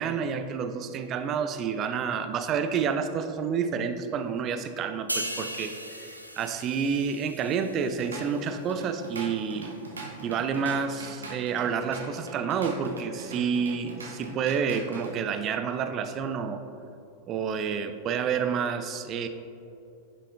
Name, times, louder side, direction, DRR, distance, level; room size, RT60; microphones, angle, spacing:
voice 1, 0.0-5.7 6.4-9.7 10.2-16.6 17.3-19.3, right 6 dB, 30° right, 9 dB, 0.4 m, -29 dB
sound 1, 5.1-8.6 9.0-9.2, equal, 90° left, 0.4 m, -38 dB
Drum kit / Drum, 7.8-15.2, right 3 dB, 75° right, 0.9 m, -41 dB
10.0 x 5.5 x 2.4 m, 2.7 s
figure-of-eight pair, 90°, 0 cm